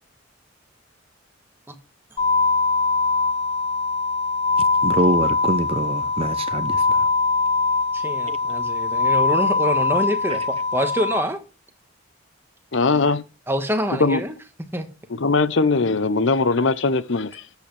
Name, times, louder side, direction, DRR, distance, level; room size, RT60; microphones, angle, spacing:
sound 1, 2.2-11.2, left 4 dB, 30° left, 1.6 m, -22 dB
voice 1, 4.6-7.1 8.3-8.4 10.3-10.4, right 1 dB, 30° right, 0.6 m, -25 dB
voice 2, 7.9-10.4 10.7-11.4 13.5-14.4 14.7-14.9, equal, 10° right, 1.4 m, -25 dB
voice 3, 12.7-13.2 14.0-14.2 15.1-17.4, left 3 dB, 65° left, 0.7 m, -20 dB
12.5 x 8.4 x 3.3 m
head